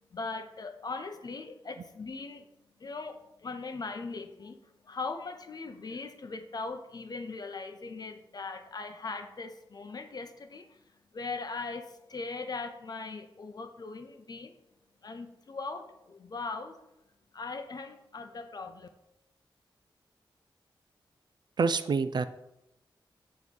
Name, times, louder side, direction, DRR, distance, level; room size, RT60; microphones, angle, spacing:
voice 1, 0.1-2.4 2.8-10.8 11.1-14.6 15.0-16.8 17.3-18.9, left 3 dB, 50° left, 8 dB, 0.7 m, -40 dB
voice 2, 21.6-22.2, right 4 dB, 55° right, 12 dB, 0.4 m, -26 dB
8.4 x 3.1 x 5.3 m, 0.87 s
wide cardioid pair, 125°, 9 cm